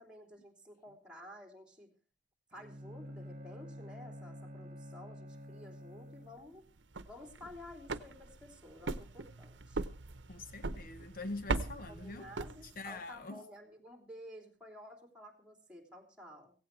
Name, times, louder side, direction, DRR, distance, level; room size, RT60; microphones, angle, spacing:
voice 1, 0.0-1.9 2.5-6.7 7.1-9.9 11.9-16.5, left 1 dB, 5° right, 3.2 m, -52 dB
Bowed string instrument, 2.5-6.6, equal, 40° right, 1.6 m, -49 dB
sound 1, 6.8-13.1, right 3 dB, 85° right, 0.8 m, -40 dB
voice 2, 10.3-12.3 12.6-13.5, left 2 dB, 50° left, 0.8 m, -44 dB
16.5 x 16.5 x 3.2 m
head